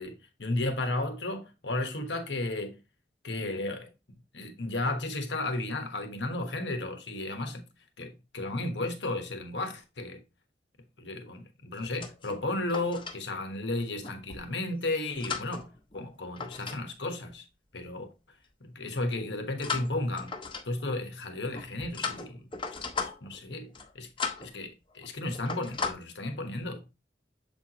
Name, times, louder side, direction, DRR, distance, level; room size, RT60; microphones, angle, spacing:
voice 1, 0.0-2.8 3.2-3.9 4.3-7.7 8.0-10.2 11.0-17.4 17.7-18.1 18.6-20.3 20.6-22.4 23.0-24.1 24.4-26.9, left 2 dB, 90° left, 1.3 m, -34 dB
sound 1, 11.8-13.2 14.0-14.5 15.0-16.8 17.1-17.3 19.6-20.9 21.5-23.4 23.7-23.9 24.2-24.5 24.9-25.1 25.3-25.9, left 5 dB, 30° left, 0.9 m, -36 dB
7.3 x 4.4 x 3.0 m
head